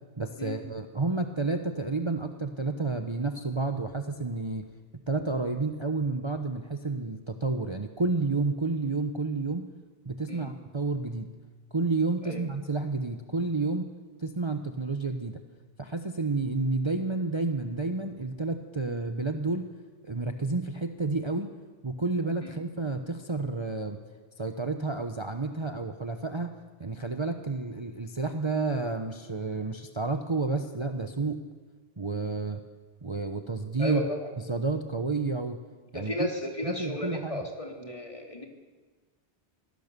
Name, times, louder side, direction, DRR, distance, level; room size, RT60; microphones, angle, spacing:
voice 1, 0.2-4.7 5.1-9.7 10.0-11.3 11.7-13.9 14.2-15.4 15.8-19.7 20.1-21.5 21.8-24.0 24.4-26.5 26.8-31.4 32.0-32.6 33.0-34.0 34.5-35.6 35.9-36.3 36.6-37.5, right 3 dB, 25° right, 6 dB, 1.0 m, -30 dB
voice 2, 33.8-34.2 35.9-38.5, left 2 dB, 30° left, 2 dB, 3.0 m, -34 dB
24.5 x 18.0 x 6.9 m, 1.4 s
omnidirectional pair, 1.1 m